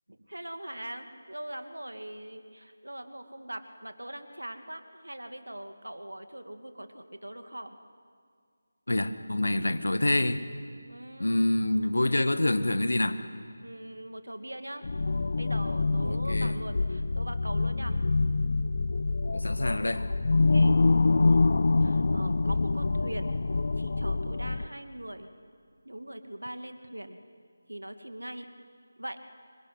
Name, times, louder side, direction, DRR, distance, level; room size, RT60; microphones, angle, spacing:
voice 1, 0.1-7.8 10.9-11.4 13.6-14.9 15.3-18.0 20.5-20.7 21.2-23.3 23.8-25.3 25.8-27.2 27.7-28.5 29.0-29.2, right 1 dB, 75° right, 7 dB, 2.3 m, -41 dB
voice 2, 8.9-10.5 11.2-13.2 16.0-16.6 19.3-20.1, left 1 dB, 65° left, 10 dB, 1.8 m, -27 dB
sound 1, 14.8-24.7, left 3 dB, 45° left, 0.7 m, -26 dB
26.0 x 24.0 x 9.5 m, 2.1 s
figure-of-eight pair, 160°, 0 cm